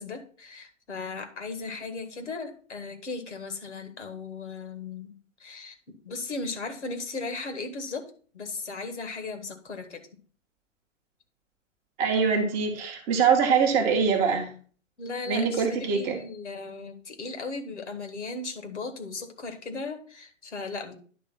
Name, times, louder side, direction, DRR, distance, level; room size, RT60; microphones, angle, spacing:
voice 1, 0.0-5.1 5.4-8.1 8.3-10.0 15.0-20.9, left 3 dB, 60° left, 6 dB, 1.8 m, -37 dB
voice 2, 12.0-14.5 15.3-16.2, right 6 dB, 15° right, 2 dB, 0.9 m, -23 dB
10.5 x 3.5 x 5.7 m, 0.42 s
figure-of-eight pair, 125°, 39 cm